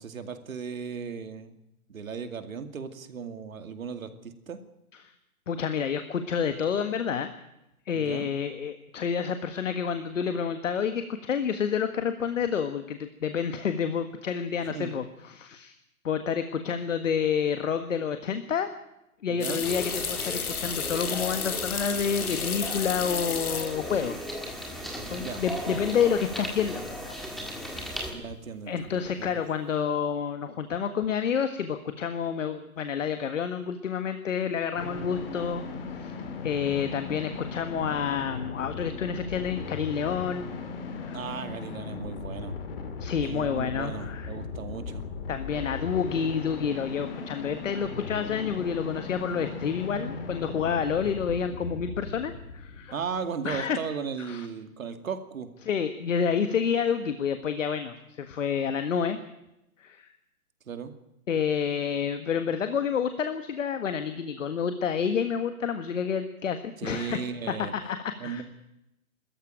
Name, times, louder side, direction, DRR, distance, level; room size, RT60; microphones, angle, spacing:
voice 1, 0.0-1.6 1.9-4.6 7.9-8.3 14.7-14.9 19.3-19.7 25.2-25.9 28.1-29.4 41.1-42.6 43.2-45.0 52.9-55.5 60.7-60.9 66.8-67.7 68.2-68.4, right 6 dB, 70° right, 9 dB, 2.5 m, -36 dB
voice 2, 5.5-7.3 7.9-15.7 16.0-18.7 19.2-24.2 24.7-24.8 25.1-27.1 27.5-27.9 28.7-36.1 36.4-40.5 41.0-41.2 43.0-44.3 45.3-53.0 53.4-53.8 54.2-54.5 55.6-59.2 59.8-60.1 61.3-68.4, left 7 dB, 60° left, 9 dB, 1.7 m, -29 dB
sound 1, 19.4-24.1 24.4-25.0 25.3-25.4 28.1-28.5 28.8-29.3, left 6 dB, 80° left, 2.2 m, -33 dB
sound 2, 19.6-28.1, equal, ahead, 1.6 m, -37 dB
sound 3, 34.8-53.3, left 4 dB, 40° left, 2.8 m, -37 dB
21.5 x 14.0 x 9.1 m, 0.89 s
hypercardioid pair, 165°, 43 cm